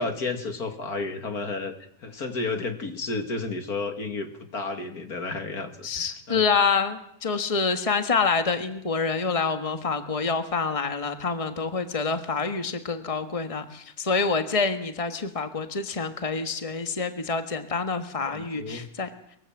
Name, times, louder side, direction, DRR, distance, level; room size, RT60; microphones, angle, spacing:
voice 1, 0.0-1.7 2.0-5.9 6.3-6.4 18.3-18.9, left 3 dB, 75° left, 6 dB, 2.8 m, -31 dB
voice 2, 5.8-19.1, left 5 dB, 25° left, 8 dB, 1.6 m, -27 dB
23.5 x 22.5 x 7.4 m, 0.69 s
omnidirectional pair, 1.6 m